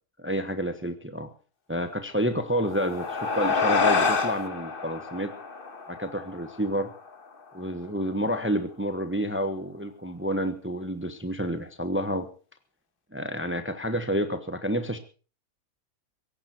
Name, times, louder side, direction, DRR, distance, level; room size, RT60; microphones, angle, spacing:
voice 1, 0.2-1.3 1.7-5.3 5.9-6.9 7.5-12.3 13.1-15.0, equal, 10° right, 9 dB, 1.2 m, -29 dB
sound 1, 2.5-7.3, left 4 dB, 40° left, 1.5 m, -28 dB
17.0 x 16.0 x 4.5 m, 0.36 s
omnidirectional pair, 1.5 m